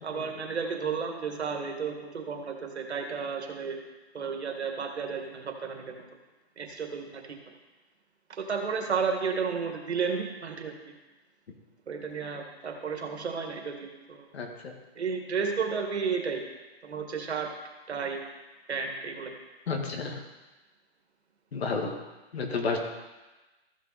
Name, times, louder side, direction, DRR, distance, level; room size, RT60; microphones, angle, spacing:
voice 1, 0.0-3.8 4.1-6.1 6.6-7.5 8.3-11.0 11.9-14.3 15.0-16.4 16.8-17.5 17.9-18.2 18.7-19.3, right 5 dB, 85° right, 3 dB, 2.0 m, -32 dB
voice 2, 14.3-14.7 19.7-20.2 21.5-21.9 22.3-22.8, left 4 dB, 70° left, 3 dB, 2.0 m, -31 dB
14.5 x 5.8 x 4.2 m, 1.1 s
hypercardioid pair, 160°, 32 cm